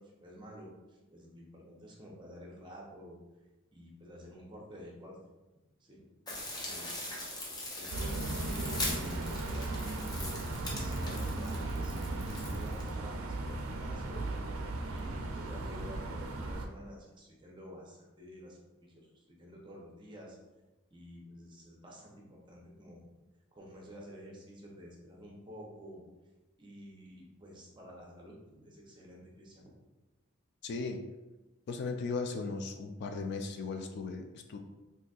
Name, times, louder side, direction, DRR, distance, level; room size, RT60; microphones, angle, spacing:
voice 1, 0.0-3.2 3.7-5.2 5.8-6.1 6.7-7.3 7.8-8.3 8.6-10.4 10.7-20.4 20.9-23.1 23.5-26.0 26.6-29.7, equal, 25° right, -2 dB, 0.7 m, -50 dB
sound 1, 6.3-12.9, left 1 dB, 20° left, 0.6 m, -41 dB
sound 2, 7.9-16.7, right 2 dB, 85° right, 0.4 m, -36 dB
voice 2, 30.6-31.0 31.7-34.6, left 4 dB, 55° left, 6 dB, 0.3 m, -37 dB
3.9 x 2.7 x 2.4 m, 1.1 s
head